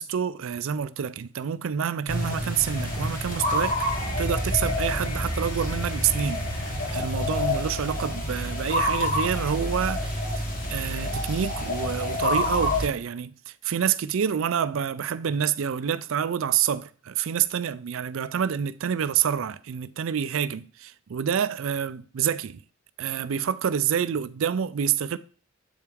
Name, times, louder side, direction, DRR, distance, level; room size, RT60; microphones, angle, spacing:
voice 1, 0.0-6.4 6.8-10.4 10.7-22.6 23.0-25.2, right 8 dB, 65° right, 0.4 m, -27 dB
sound 1, 2.1-12.9, left 1 dB, 40° left, 1.3 m, -28 dB
sound 2, 2.5-7.1, left 3 dB, 90° left, 1.5 m, -44 dB
7.8 x 4.6 x 3.5 m
head